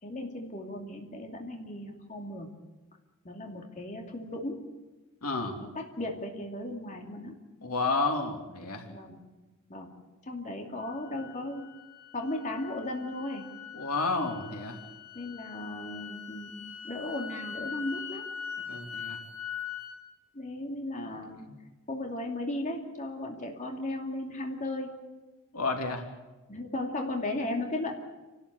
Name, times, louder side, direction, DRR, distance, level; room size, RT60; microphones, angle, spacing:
voice 1, 0.0-2.5 3.2-4.6 5.6-7.4 8.9-9.2 9.7-9.9 10.3-11.7 12.1-13.5 15.1-18.2 20.3-21.5 21.9-24.9 26.5-27.9, left 1 dB, 35° left, 1 dB, 2.7 m, -36 dB
voice 2, 5.2-5.5 7.6-8.9 13.7-14.8 18.7-19.2 21.0-21.1 21.4-21.5 25.5-26.0, left 3 dB, 90° left, 3 dB, 3.1 m, -31 dB
sound 1, 10.8-20.0, left 7 dB, 60° left, 5.5 m, -42 dB
29.0 x 13.0 x 8.4 m, 1.2 s
head